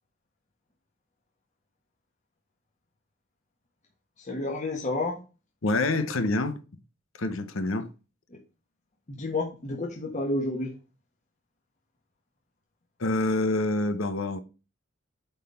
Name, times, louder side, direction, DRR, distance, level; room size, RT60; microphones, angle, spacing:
voice 1, 4.2-5.2 8.3-8.4 9.1-10.7, left 2 dB, 35° left, 1.4 m, -30 dB
voice 2, 5.6-6.6 7.2-7.9 13.0-14.4, left 2 dB, 85° left, 0.9 m, -26 dB
9.0 x 4.0 x 4.3 m
head